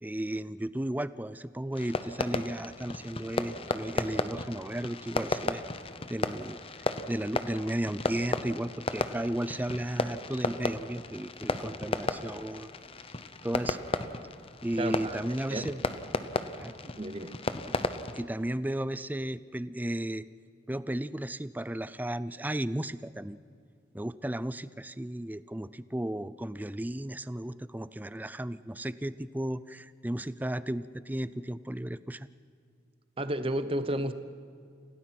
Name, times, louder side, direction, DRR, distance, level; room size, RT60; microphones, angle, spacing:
voice 1, 0.0-5.6 6.1-6.6 7.1-12.7 13.4-13.8 14.6-15.8 16.6-16.7 18.1-20.3 20.7-23.4 23.9-32.3, right 1 dB, 10° right, 16 dB, 0.4 m, -34 dB
Fireworks, 1.7-18.2, left 2 dB, 30° left, 0.8 m, -34 dB
voice 2, 14.8-15.2 15.5-15.6 16.6-17.3 33.2-34.1, right 1 dB, 30° right, 10 dB, 1.0 m, -32 dB
27.0 x 17.0 x 6.0 m, 2.4 s
head